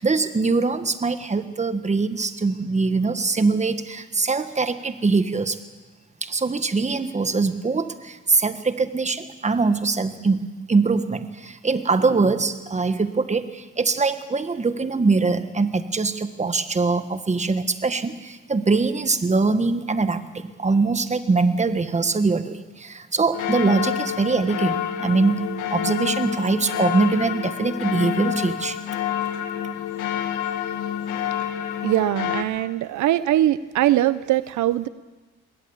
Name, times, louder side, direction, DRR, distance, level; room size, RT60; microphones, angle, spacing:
voice 1, 0.0-5.6 6.2-28.8, right 4 dB, 25° right, 10 dB, 1.4 m, -23 dB
sound 1, 23.3-32.4, left 10 dB, 90° left, 1.7 m, -28 dB
voice 2, 31.8-34.9, right 13 dB, 75° right, 16 dB, 0.6 m, -21 dB
21.0 x 18.0 x 7.2 m, 1.2 s
cardioid pair, 90°, 30 cm